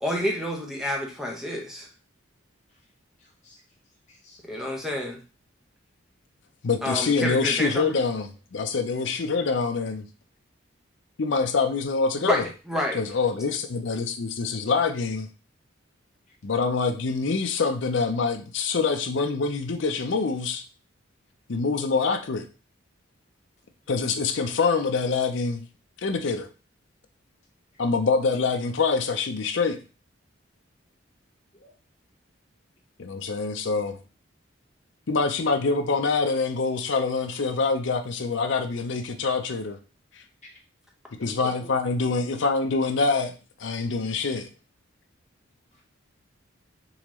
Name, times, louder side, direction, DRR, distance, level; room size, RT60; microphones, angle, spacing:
voice 1, 0.0-1.9 4.4-5.2 6.8-8.0 12.2-13.0, left 1 dB, 5° right, 0 dB, 0.7 m, -29 dB
voice 2, 3.2-3.6 4.1-4.4 16.3-16.4 31.5-31.7 40.4-40.6 41.2-41.7 45.7-45.8, equal, 35° left, -3 dB, 1.2 m, -48 dB
voice 3, 6.6-10.1 11.2-12.5 12.9-15.3 16.4-20.6 21.5-22.5 23.9-25.6 26.0-26.5 27.8-29.8 33.0-34.0 35.1-39.8 40.2-40.3 41.2-43.3 43.6-44.5, left 4 dB, 65° left, 7 dB, 0.5 m, -25 dB
3.8 x 2.9 x 3.0 m, 0.34 s
head